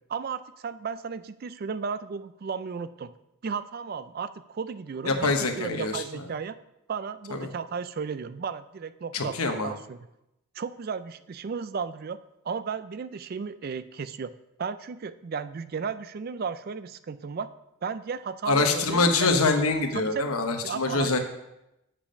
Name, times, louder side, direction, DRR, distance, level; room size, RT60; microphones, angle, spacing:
voice 1, 0.1-3.1 3.4-6.5 6.9-10.0 10.5-12.2 12.4-14.3 14.6-17.5 17.8-19.1 19.9-20.3 20.6-21.2, right 5 dB, 45° right, 14 dB, 0.4 m, -34 dB
voice 2, 5.0-6.0 7.3-7.5 9.1-9.7 18.5-21.2, left 3 dB, 90° left, 5 dB, 1.1 m, -25 dB
7.3 x 7.1 x 5.1 m, 0.88 s
head